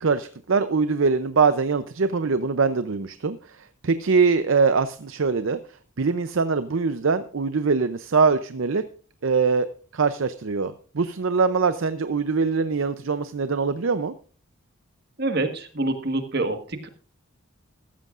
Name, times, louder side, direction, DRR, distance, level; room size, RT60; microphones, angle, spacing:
voice 1, 0.0-3.4 3.8-5.6 6.0-8.8 9.2-9.7 9.9-14.1, right 4 dB, 65° right, 11 dB, 0.6 m, -22 dB
voice 2, 15.2-16.9, right 2 dB, 50° right, 7 dB, 1.5 m, -26 dB
14.5 x 13.5 x 2.5 m, 0.41 s
head